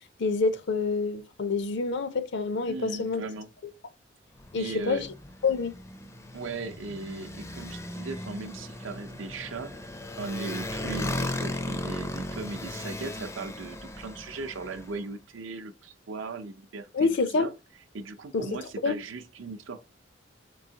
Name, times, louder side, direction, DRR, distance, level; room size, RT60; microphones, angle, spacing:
voice 1, 0.2-3.2 4.5-5.1 5.4-5.8 16.9-17.5 18.3-18.5 18.8-19.0, left 4 dB, 65° left, 0.5 m, -27 dB
voice 2, 2.7-3.5 4.6-5.1 6.3-9.9 10.2-17.1 17.4-17.5 17.9-19.8, right 3 dB, 75° right, 0.6 m, -38 dB
Motorcycle, 4.3-15.0, left 1 dB, 15° left, 0.4 m, -37 dB
3.9 x 3.4 x 2.8 m
head